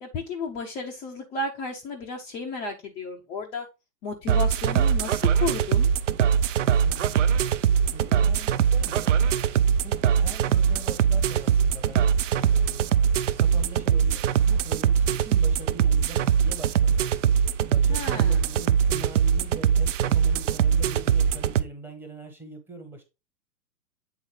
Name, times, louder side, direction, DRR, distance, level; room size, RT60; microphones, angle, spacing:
voice 1, 0.0-3.7 4.0-5.9 17.9-18.4, left 3 dB, 10° left, 0.5 m, -33 dB
sound 1, 4.3-21.6, right 8 dB, 50° right, 0.5 m, -22 dB
voice 2, 6.8-7.2 7.9-9.1 9.6-12.1 12.4-12.9 13.4-17.1 17.7-23.0, right 2 dB, 5° right, 1.0 m, -43 dB
8.2 x 3.8 x 3.7 m
hypercardioid pair, 130°, 50 cm